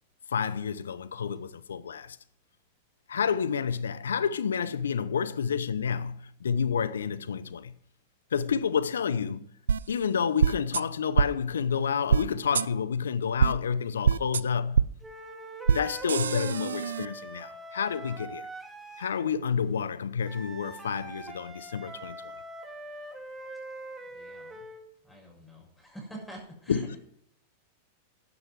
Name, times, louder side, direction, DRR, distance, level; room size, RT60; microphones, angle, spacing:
voice 1, 0.3-2.2 3.1-7.7 8.3-9.5 9.9-14.8 15.7-18.5 19.0-22.3 26.7-27.0, left 6 dB, 80° left, 0.8 m, -29 dB
sound 1, 9.7-9.8 10.4-10.8 11.2-11.3 12.1-12.2 12.5-12.7 13.4-13.5 14.0-14.4 14.7-14.9 15.7-15.8 16.1-17.1, right 7 dB, 80° right, 0.4 m, -23 dB
sound 2, 15.0-19.3 20.2-24.9, right 2 dB, 10° right, 2.6 m, -43 dB
voice 2, 24.1-24.7 25.0-27.0, right 1 dB, 5° left, 6.3 m, -46 dB
13.5 x 9.9 x 4.7 m
hypercardioid pair, 100°, 0 cm